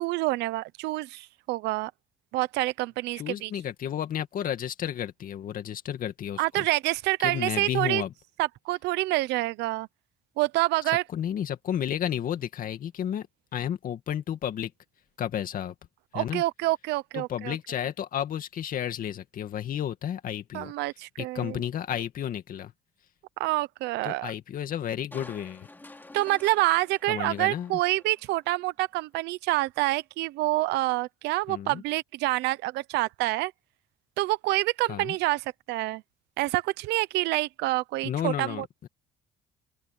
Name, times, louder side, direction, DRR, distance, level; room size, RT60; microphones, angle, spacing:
voice 1, 0.0-1.9 2.3-3.5 6.4-8.0 8.4-9.9 10.4-11.0 16.1-17.6 20.5-21.6 23.4-24.3 26.1-33.5 34.2-35.4 35.7-36.0 36.4-38.6, right 19 dB, 90° right, 0.9 m, -27 dB
voice 2, 3.1-6.7 7.2-8.1 11.1-13.3 13.5-14.7 15.2-15.7 16.1-16.4 17.1-20.7 21.2-22.7 24.0-25.7 27.1-27.8 31.5-31.8 34.9-35.2 38.0-38.9, left 10 dB, 55° left, 2.2 m, -32 dB
Crushing, 25.1-28.5 28.9-29.0, left 2 dB, 10° left, 2.8 m, -50 dB
open air
cardioid pair, 110°, 17 cm